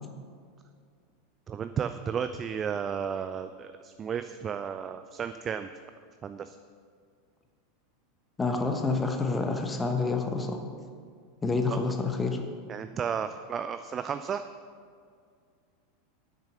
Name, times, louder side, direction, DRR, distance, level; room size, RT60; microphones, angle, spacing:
voice 1, 1.5-5.7 6.2-6.6 11.7-11.8 12.7-14.4, right 7 dB, 30° right, 9 dB, 0.4 m, -33 dB
voice 2, 8.4-10.6 11.4-12.4, left 3 dB, 15° left, 5 dB, 1.1 m, -28 dB
8.9 x 6.6 x 6.4 m, 2.1 s
figure-of-eight pair, 85°, 0 cm